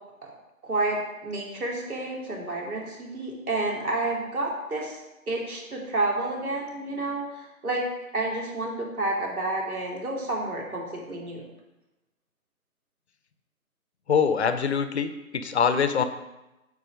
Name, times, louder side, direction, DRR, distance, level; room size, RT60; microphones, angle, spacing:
voice 1, 0.6-5.0 5.3-7.8 8.1-11.4, right 2 dB, 85° right, -2 dB, 2.7 m, -30 dB
voice 2, 14.1-16.0, left 6 dB, 50° left, 10 dB, 0.7 m, -24 dB
8.6 x 4.2 x 5.2 m, 0.99 s
hypercardioid pair, 150°, 43 cm